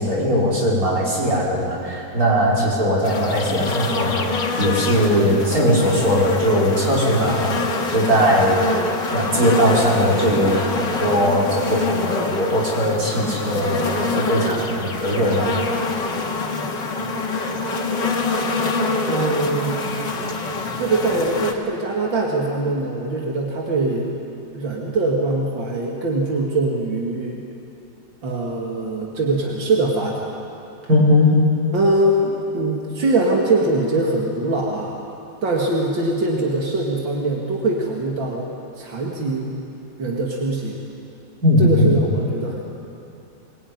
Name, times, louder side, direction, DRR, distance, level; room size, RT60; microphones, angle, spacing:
voice 1, 0.0-7.6 7.9-8.7 9.1-15.6 30.9-31.4 41.4-41.9, equal, 50° right, -4 dB, 5.7 m, -19 dB
sound 1, 3.0-21.5, left 3 dB, 75° left, 2.6 m, -25 dB
voice 2, 16.9-17.6 19.1-19.8 20.8-24.1 24.5-27.4 28.2-30.3 31.7-35.0 35.4-38.5 38.8-39.5 40.0-40.8 41.6-42.6, right 2 dB, 85° right, -2 dB, 3.0 m, -22 dB
23.5 x 21.5 x 9.7 m, 2.9 s
omnidirectional pair, 2.0 m